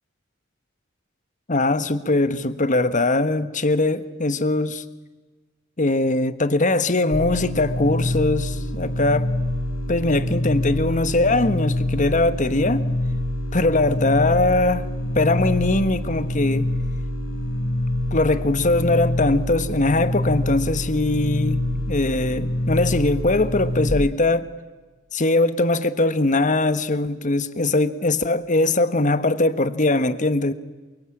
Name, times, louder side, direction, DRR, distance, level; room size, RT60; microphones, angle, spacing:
voice 1, 1.5-4.8 5.8-9.3 9.9-12.9 13.5-14.9 15.1-16.7 18.1-21.6 21.9-24.5 25.1-30.5, left 2 dB, 40° left, 1.4 m, -21 dB
sound 1, 7.1-23.9, left 1 dB, 85° left, 4.3 m, -26 dB
27.5 x 24.5 x 8.8 m
head